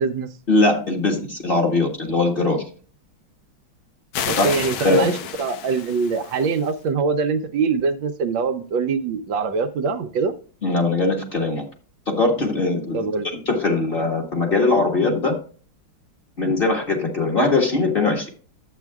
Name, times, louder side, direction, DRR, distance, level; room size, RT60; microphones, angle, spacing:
voice 1, 0.5-2.6 4.4-4.5 4.8-5.2 10.6-11.6 12.1-13.0 13.2-15.4 16.4-18.3, left 3 dB, 30° left, 1.8 m, -21 dB
sound 1, 4.1-6.7, left 9 dB, 65° left, 1.3 m, -31 dB
voice 2, 4.3-5.1 5.4-10.3 12.9-13.3, right 5 dB, 75° right, 1.4 m, -23 dB
11.5 x 8.1 x 2.3 m
omnidirectional pair, 2.2 m